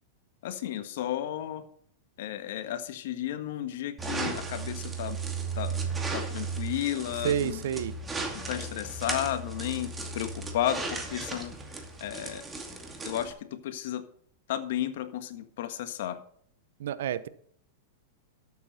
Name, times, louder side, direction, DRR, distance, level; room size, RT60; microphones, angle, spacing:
voice 1, 0.4-1.6 2.2-5.2 5.5-5.8 6.1-7.6 8.3-11.6 12.0-12.4 13.0-14.0 14.5-16.2, left 11 dB, 70° left, 10 dB, 1.5 m, -33 dB
sound 1, 4.0-13.3, right 4 dB, 15° right, 2.4 m, -35 dB
voice 2, 7.2-7.9 16.8-17.3, right 10 dB, 75° right, 15 dB, 0.9 m, -29 dB
12.5 x 8.4 x 4.3 m, 0.63 s
hypercardioid pair, 125°, 0 cm